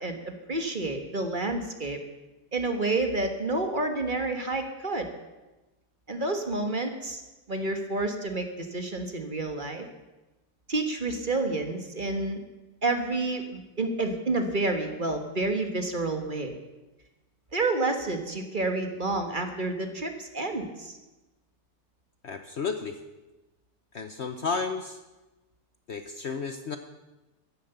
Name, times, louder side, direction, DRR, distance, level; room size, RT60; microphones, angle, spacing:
voice 1, 0.0-2.0 2.5-5.1 6.1-7.2 7.5-9.9 10.7-12.4 12.8-16.5 17.5-21.0, right 2 dB, 35° right, 5 dB, 1.4 m, -29 dB
voice 2, 22.2-23.0 23.9-25.0 25.9-26.8, left 5 dB, 50° left, 8 dB, 0.9 m, -32 dB
15.0 x 11.0 x 6.8 m, 1.1 s
omnidirectional pair, 1.7 m